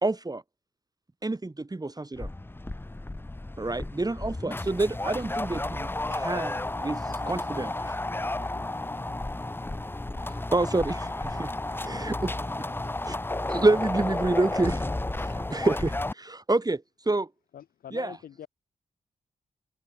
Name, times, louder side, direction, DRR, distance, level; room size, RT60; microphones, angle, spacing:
voice 1, 0.0-0.4 1.2-2.3 3.6-6.5 6.8-7.0 7.3-7.7 10.2-11.5 11.8-12.3 13.0-13.2 13.5-14.9 15.2-17.3 17.9-18.2, right 2 dB, 25° right, 2.2 m, -28 dB
sound 1, 2.2-16.1, left 2 dB, 15° left, 0.7 m, -32 dB
voice 2, 6.7-9.2 11.5-13.3, left 5 dB, 60° left, 7.2 m, -52 dB
voice 3, 17.5-18.5, left 10 dB, 85° left, 1.7 m, -44 dB
supercardioid pair, 45°, 15 cm